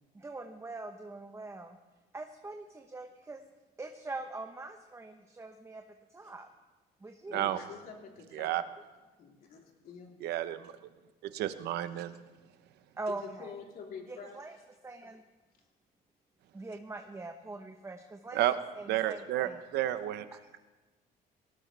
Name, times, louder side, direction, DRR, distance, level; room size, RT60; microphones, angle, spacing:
voice 1, 0.1-1.8 2.1-3.4 3.8-5.8 6.1-6.5 7.0-7.5 13.0-13.5 14.1-14.6 14.8-15.2 16.5-18.4 18.7-19.6 20.3-20.5, right 2 dB, 15° right, 4 dB, 0.9 m, -43 dB
voice 2, 7.2-8.6 9.2-10.1 13.1-14.4, left 6 dB, 60° left, -1 dB, 3.4 m, -47 dB
voice 3, 10.2-10.7 11.2-12.1 18.3-18.5 18.9-20.3, right 13 dB, 80° right, 12 dB, 0.9 m, -31 dB
18.5 x 18.0 x 3.4 m, 1.2 s
cardioid pair, 110°, 17 cm